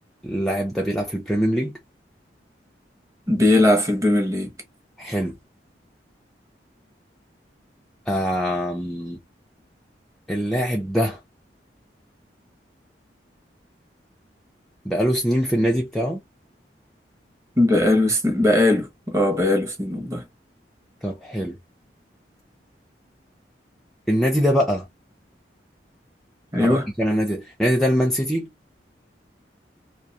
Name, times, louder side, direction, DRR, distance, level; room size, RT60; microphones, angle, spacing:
voice 1, 0.2-1.7 5.0-5.3 8.1-9.2 10.3-11.2 14.8-16.2 21.0-21.6 24.1-24.8 26.6-28.5, equal, ahead, 0.4 m, -23 dB
voice 2, 3.3-4.5 17.6-20.2 26.5-26.9, left 1 dB, 20° right, 0.8 m, -19 dB
2.3 x 2.3 x 2.7 m
head